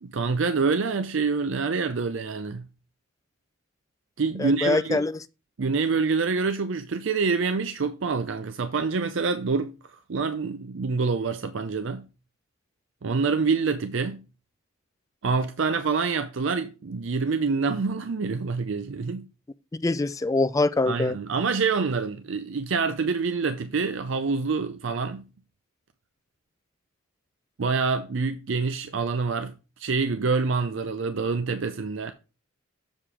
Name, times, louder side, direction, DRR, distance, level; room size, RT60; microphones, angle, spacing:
voice 1, 0.0-2.6 4.2-5.0 5.6-12.0 13.0-14.2 15.2-19.3 20.9-25.2 27.6-29.5 29.8-32.1, right 4 dB, 65° right, 0.5 m, -26 dB
voice 2, 4.4-5.1 19.8-21.2, left 2 dB, 15° left, 0.3 m, -24 dB
7.2 x 4.8 x 4.9 m
head